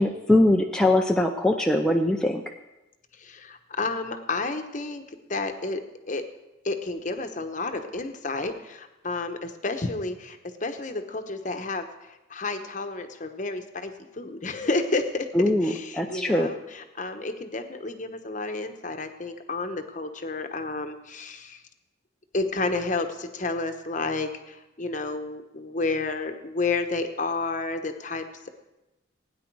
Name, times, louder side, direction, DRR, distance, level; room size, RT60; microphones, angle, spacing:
voice 1, 0.0-2.4 15.3-16.5, left 1 dB, 5° left, 1 dB, 0.5 m, -22 dB
voice 2, 3.2-5.0 5.3-6.2 6.6-11.9 12.3-21.6 22.3-28.2, left 3 dB, 40° left, 7 dB, 1.0 m, -31 dB
17.0 x 9.7 x 4.7 m, 0.99 s
head